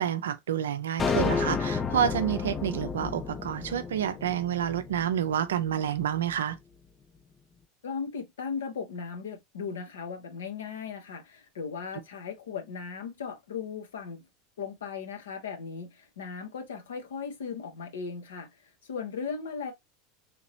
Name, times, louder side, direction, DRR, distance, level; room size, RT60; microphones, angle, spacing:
voice 1, 0.0-6.6, right 9 dB, 75° right, 0.5 m, -29 dB
sound 1, 1.0-5.4, left 5 dB, 25° left, 0.5 m, -31 dB
voice 2, 7.8-14.2 14.6-19.7, left 6 dB, 75° left, 1.2 m, -37 dB
3.6 x 3.0 x 2.6 m
hypercardioid pair, 80°, 0 cm